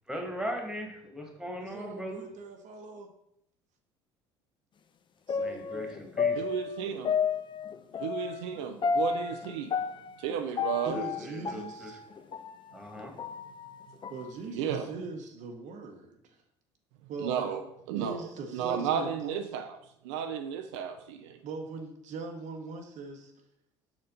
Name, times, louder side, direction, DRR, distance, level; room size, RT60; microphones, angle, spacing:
voice 1, 0.1-2.2 5.4-6.4 10.9-11.9 12.7-13.1, equal, 5° right, 2 dB, 1.7 m, -39 dB
voice 2, 1.6-3.1 5.3-6.1 10.8-12.0 14.1-16.1 17.1-17.5 18.0-19.3 21.4-23.3, right 3 dB, 55° right, 4 dB, 0.8 m, -41 dB
sound 1, 5.3-12.5 13.0-14.3 14.7-14.8, left 6 dB, 35° left, 0.5 m, -32 dB
voice 3, 6.3-7.1 8.0-9.7 10.2-11.0 14.5-14.9 17.2-18.2 18.5-19.8 20.0-21.4, right 8 dB, 75° right, 6 dB, 0.5 m, -33 dB
6.2 x 4.4 x 3.8 m, 0.77 s
hypercardioid pair, 65°, 15 cm